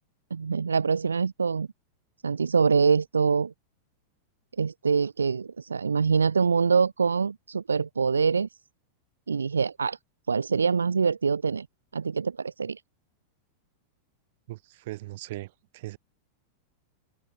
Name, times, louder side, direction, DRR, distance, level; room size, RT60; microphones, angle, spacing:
voice 1, 0.3-1.7 2.2-3.5 4.6-8.5 9.3-10.0 10.3-11.7 11.9-12.8, right 5 dB, 75° right, 0.7 m, -24 dB
voice 2, 14.5-16.0, right 18 dB, 50° right, 1.4 m, -39 dB
figure-of-eight pair, 90°, 0 cm